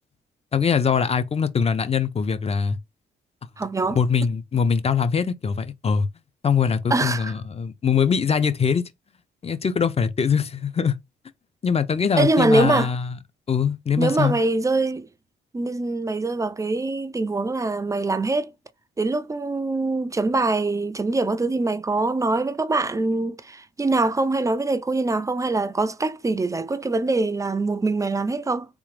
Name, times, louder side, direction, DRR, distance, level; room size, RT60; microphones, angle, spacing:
voice 1, 0.5-2.8 3.9-6.1 6.4-8.8 9.4-11.0 11.6-13.1 13.5-14.4, left 6 dB, 30° left, 0.6 m, -22 dB
voice 2, 3.6-4.0 6.9-7.3 12.1-12.9 14.0-15.1 15.5-18.5 19.0-28.7, right 3 dB, 15° right, 0.4 m, -23 dB
3.6 x 2.5 x 3.3 m
cardioid pair, 90°, 20 cm